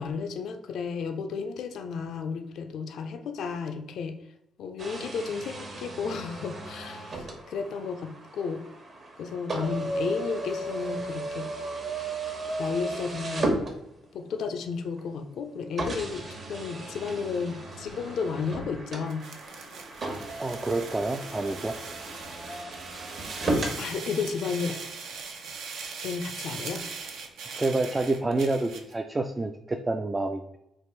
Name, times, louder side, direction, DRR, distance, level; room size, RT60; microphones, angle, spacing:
voice 1, 0.0-4.2 4.6-8.6 9.2-11.5 12.6-13.6 14.1-19.2 23.8-24.8 26.0-26.9, left 5 dB, 70° left, 6 dB, 0.4 m, -33 dB
sound 1, 4.8-14.3 15.0-15.1 15.8-23.8, right 2 dB, 45° right, 1.0 m, -35 dB
sound 2, 19.1-28.9, right 5 dB, 80° right, 0.6 m, -40 dB
voice 2, 20.4-21.7 27.5-30.6, right 2 dB, 20° right, 5 dB, 0.3 m, -28 dB
3.4 x 2.5 x 4.5 m, 0.85 s
cardioid pair, 90°, 0 cm